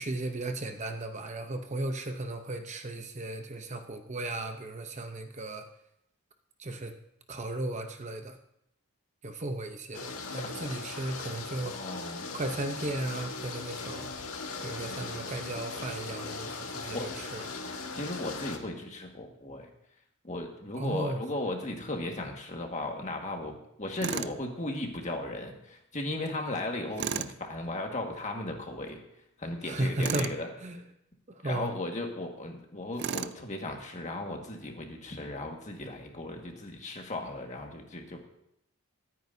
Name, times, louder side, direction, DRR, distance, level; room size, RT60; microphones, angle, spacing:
voice 1, 0.0-5.7 6.6-6.9 7.3-8.4 9.2-11.9 12.3-14.1 14.6-17.5 20.7-21.2 29.6-30.3 30.6-30.8 31.3-31.7, right 2 dB, 30° right, 6 dB, 0.8 m, -35 dB
sound 1, 9.9-18.6, left 4 dB, 75° left, 1.6 m, -39 dB
voice 2, 11.6-12.2 16.9-17.1 17.9-19.7 20.2-29.0 29.4-30.5 31.4-38.2, left 2 dB, 35° left, 2 dB, 1.7 m, -36 dB
Tools, 24.0-24.4 27.0-27.4 30.0-30.4 33.0-33.4, right 7 dB, 50° right, 0.4 m, -33 dB
23.5 x 9.3 x 2.7 m, 0.78 s
head